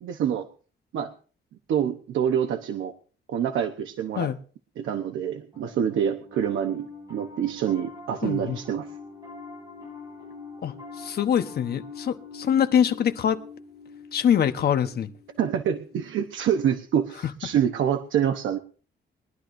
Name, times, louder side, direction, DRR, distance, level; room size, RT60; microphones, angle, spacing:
voice 1, 0.0-0.5 0.9-1.1 1.7-2.9 3.3-4.3 4.8-8.9 15.4-18.6, right 9 dB, 90° right, 6 dB, 0.9 m, -26 dB
Piano, 5.5-17.0, left 4 dB, 20° right, 7.1 m, -44 dB
voice 2, 8.2-8.6 10.6-13.4 14.1-15.1, left 9 dB, 55° left, 9 dB, 1.0 m, -24 dB
22.0 x 11.5 x 2.6 m, 0.40 s
cardioid pair, 150°, 20 cm